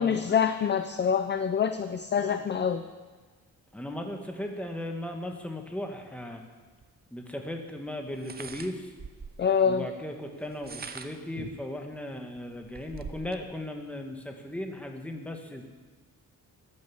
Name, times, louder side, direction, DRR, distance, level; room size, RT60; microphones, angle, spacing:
voice 1, 0.0-2.8 9.4-9.9, left 7 dB, 30° left, 9 dB, 0.5 m, -26 dB
voice 2, 3.7-6.4 7.1-8.9 9.6-15.6, left 1 dB, 5° left, 3 dB, 1.3 m, -37 dB
sound 1, 6.8-6.9 8.1-9.5 10.4-11.3 11.9-12.0 12.4-13.4, right 5 dB, 30° right, 0.6 m, -43 dB
14.0 x 10.5 x 7.0 m, 1.4 s
wide cardioid pair, 175°, 35 cm